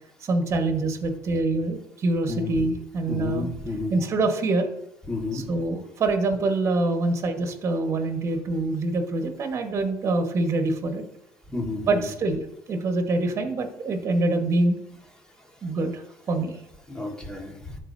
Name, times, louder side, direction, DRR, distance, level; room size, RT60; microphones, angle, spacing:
voice 1, 0.2-3.5 3.9-4.7 5.3-11.0 11.9-12.4 12.7-14.8 15.6-16.6, right 2 dB, 45° right, 5 dB, 1.4 m, -25 dB
voice 2, 2.3-2.6 3.1-4.0 5.1-5.4 11.5-12.0 16.9-17.6, left 3 dB, 10° left, 1 dB, 1.7 m, -30 dB
12.0 x 4.2 x 2.7 m, 0.76 s
cardioid pair, 100°, 7 cm